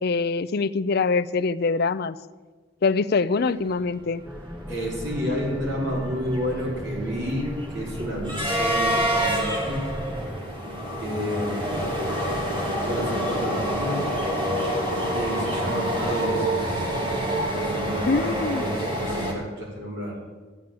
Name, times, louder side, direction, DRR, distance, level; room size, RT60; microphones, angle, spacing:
voice 1, 0.0-2.2 2.8-4.2 18.1-18.6, left 4 dB, 50° left, 13 dB, 0.5 m, -24 dB
sound 1, 3.9-4.0 4.3-4.5 4.9-19.3, right 1 dB, 25° right, 2.4 m, -27 dB
sound 2, 4.2-10.4, equal, 5° right, 0.6 m, -36 dB
voice 2, 4.7-9.9 11.0-11.6 12.8-14.1 15.1-16.8 17.5-20.2, equal, 60° right, -3 dB, 4.7 m, -30 dB
14.0 x 8.8 x 7.7 m, 1.3 s
head